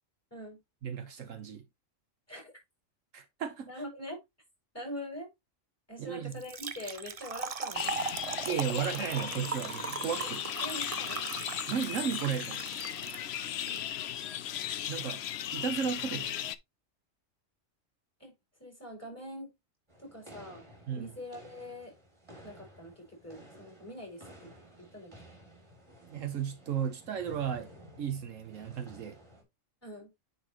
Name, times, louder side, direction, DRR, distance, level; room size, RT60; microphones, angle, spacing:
voice 1, 0.8-1.6 3.1-3.7 6.0-6.4 8.5-10.4 11.7-12.8 14.9-15.2 15.5-16.5 20.9-21.1 26.1-27.7 28.0-29.2, right 8 dB, 75° right, 1.3 m, -34 dB
voice 2, 3.7-4.2 4.7-5.3 5.9-7.9 10.2-10.3 10.6-11.2 13.5-13.8 18.2-18.3 18.6-19.5 20.0-20.6 20.9-21.9 22.4-25.1 29.8-30.1, left 1 dB, 10° left, 4.9 m, -44 dB
Trickle dribble / Fill (with liquid), 6.3-13.8, right 5 dB, 40° right, 0.6 m, -39 dB
sound 1, 7.7-16.6, left 11 dB, 65° left, 0.8 m, -37 dB
sound 2, 19.9-29.4, equal, 20° right, 2.8 m, -54 dB
9.3 x 4.5 x 2.9 m
omnidirectional pair, 1.3 m